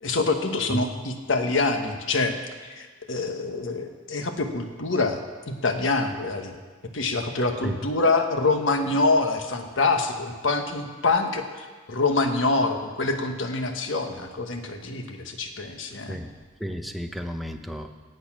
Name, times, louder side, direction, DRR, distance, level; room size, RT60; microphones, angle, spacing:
voice 1, 0.0-2.3 2.7-6.6 6.9-16.2, left 3 dB, 70° left, 5 dB, 1.3 m, -25 dB
voice 2, 16.6-17.9, equal, ahead, 4 dB, 0.7 m, -32 dB
17.5 x 8.1 x 6.1 m, 1.4 s
head